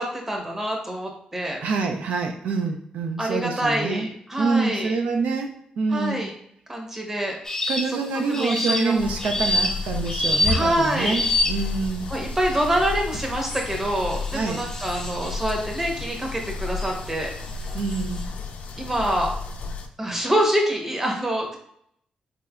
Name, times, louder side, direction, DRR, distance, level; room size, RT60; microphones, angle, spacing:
voice 1, 0.0-1.6 3.2-5.0 5.9-6.3 6.7-7.3 8.3-8.9 10.5-11.2 12.1-17.3 18.8-19.3 20.0-21.6, right 1 dB, 15° right, 1 dB, 0.9 m, -26 dB
voice 2, 1.6-4.1 4.4-6.3 7.7-12.1 14.3-14.6 17.7-18.2, right 4 dB, 80° right, 4 dB, 0.4 m, -26 dB
sound 1, 7.5-8.0 8.3-11.8 12.5-12.9 13.4-16.9 17.5-18.2, left 1 dB, 20° left, 0.6 m, -27 dB
sound 2, 9.0-19.9, left 4 dB, 70° left, 0.4 m, -32 dB
3.7 x 3.1 x 2.4 m, 0.70 s
cardioid pair, 95°, 3 cm